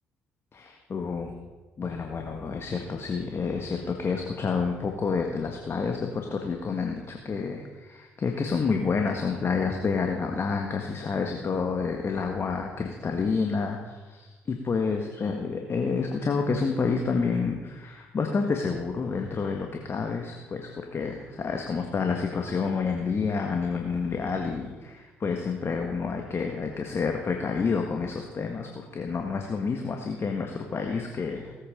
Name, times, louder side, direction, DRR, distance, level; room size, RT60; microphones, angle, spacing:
voice 1, 0.5-1.3 1.8-31.6, left 5 dB, 45° left, 3 dB, 1.6 m, -29 dB
17.0 x 8.5 x 5.2 m, 1.3 s
hypercardioid pair, 50°, 6 cm